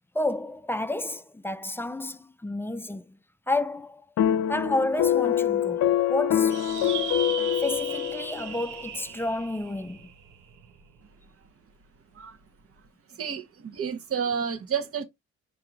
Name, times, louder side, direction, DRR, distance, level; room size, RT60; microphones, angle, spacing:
voice 1, 0.1-3.2 3.5-4.0 4.5-6.7 7.6-10.1, left 2 dB, 10° left, 0.4 m, -30 dB
sound 1, 4.2-8.6, left 10 dB, 65° left, 0.6 m, -25 dB
sound 2, 6.5-11.2, right 8 dB, 80° right, 0.9 m, -38 dB
voice 2, 13.2-15.0, right 7 dB, 50° right, 1.0 m, -30 dB
4.6 x 2.7 x 3.8 m
cardioid pair, 90°, 30 cm